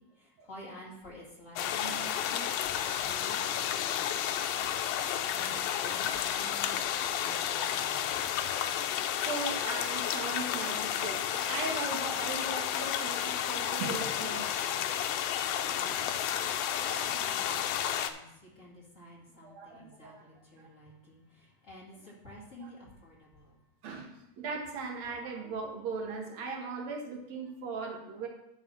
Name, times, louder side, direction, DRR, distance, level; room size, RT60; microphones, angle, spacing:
voice 1, 0.0-8.2 15.9-23.6, equal, 30° left, -5 dB, 1.7 m, -50 dB
sound 1, 1.6-18.1, left 10 dB, 85° left, 2.4 m, -32 dB
voice 2, 8.9-14.9 15.6-16.1 16.9-17.4 19.4-20.2 20.6-20.7 22.3-22.7 23.8-28.3, right 4 dB, 65° right, 1 dB, 1.8 m, -39 dB
11.0 x 4.2 x 5.8 m, 0.85 s
omnidirectional pair, 4.1 m